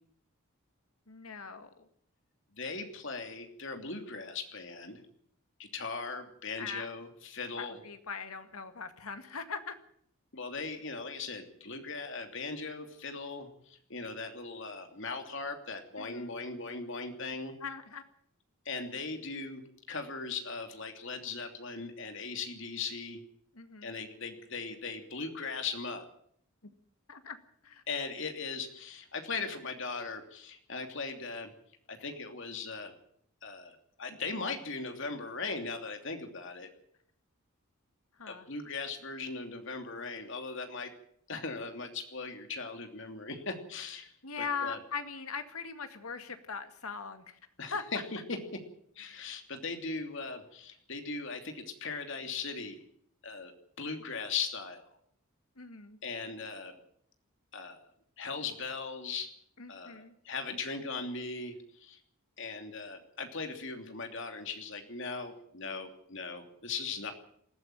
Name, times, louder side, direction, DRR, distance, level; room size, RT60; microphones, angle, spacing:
voice 1, 1.1-1.9 6.6-6.9 7.6-9.7 16.0-16.3 17.6-18.0 23.5-24.0 26.6-26.7 27.1-27.4 27.6-27.8 38.2-38.5 44.2-47.4 47.7-47.8 55.6-56.0 59.6-60.2, left 5 dB, 80° left, 8 dB, 2.1 m, -40 dB
voice 2, 2.5-5.0 5.6-7.8 10.3-17.5 18.6-23.2 23.8-26.1 27.9-31.5 31.9-32.9 33.4-36.7 38.3-40.9 41.3-44.8 47.6-48.6 49.0-52.8 53.2-53.5 53.8-54.8 56.0-56.8 57.5-57.8 58.2-59.3 59.7-62.0 62.4-67.1, left 4 dB, 55° left, 5 dB, 2.9 m, -39 dB
20.5 x 14.5 x 9.1 m, 0.66 s
head